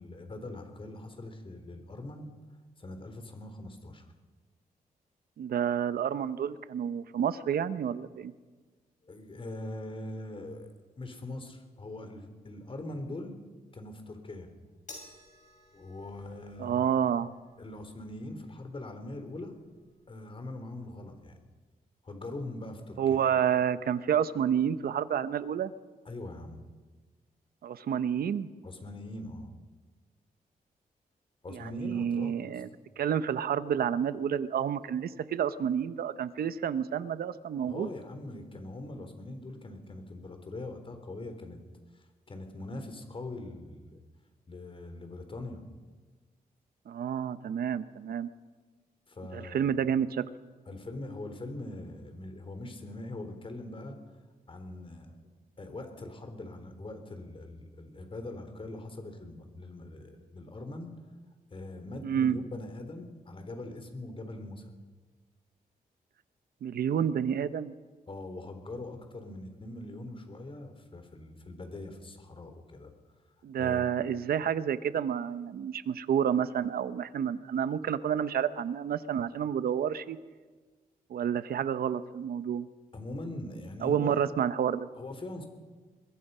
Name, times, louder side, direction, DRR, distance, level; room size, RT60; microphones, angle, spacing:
voice 1, 0.0-2.3 2.8-4.1 9.0-13.4 13.7-14.5 15.7-16.9 17.6-19.6 20.1-21.4 22.0-23.4 26.1-26.6 28.6-29.5 31.4-32.6 37.7-41.6 41.9-44.0 44.5-45.6 49.1-49.6 50.7-54.0 54.5-55.2 55.6-60.9 61.5-64.6 68.1-72.9 73.6-73.9 82.9-84.3 85.0-85.5, left 2 dB, 35° left, 7 dB, 3.7 m, -42 dB
voice 2, 5.4-8.3 16.6-17.3 23.0-25.7 27.6-28.5 31.5-32.7 33.0-37.9 46.9-48.3 49.3-50.3 62.0-62.4 66.6-67.7 73.4-80.2 81.1-82.7 83.8-84.9, right 8 dB, 80° right, 13 dB, 0.9 m, -29 dB
sound 1, 14.9-21.4, left 2 dB, 50° left, 6.0 m, -56 dB
24.5 x 21.5 x 5.6 m, 1.4 s
cardioid pair, 95°, 15 cm